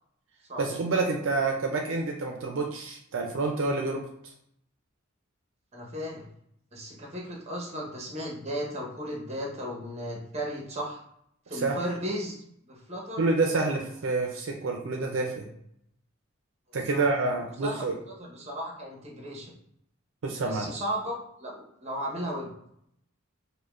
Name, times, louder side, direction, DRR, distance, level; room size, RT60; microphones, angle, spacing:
voice 1, 0.6-4.0 11.5-11.8 13.2-15.5 16.7-17.9 20.2-20.7, right 3 dB, 70° right, 1 dB, 0.5 m, -28 dB
voice 2, 5.7-6.3 6.7-11.0 11.5-13.3 16.9-17.0 17.6-19.5 20.4-22.5, equal, 30° right, -2 dB, 0.9 m, -35 dB
5.0 x 2.2 x 2.4 m, 0.72 s
head